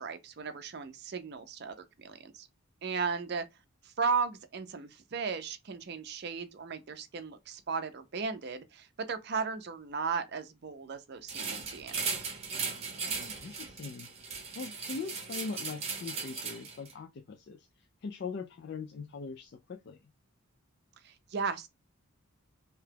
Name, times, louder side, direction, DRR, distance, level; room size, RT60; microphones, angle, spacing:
voice 1, 0.0-2.5 2.8-3.5 3.8-12.3 21.0-21.7, right 5 dB, 50° right, 0.4 m, -36 dB
sound 1, 11.3-16.9, right 5 dB, 30° right, 0.9 m, -37 dB
voice 2, 13.0-14.1 14.5-20.0, left 4 dB, 50° left, 0.3 m, -41 dB
2.8 x 2.2 x 3.3 m
head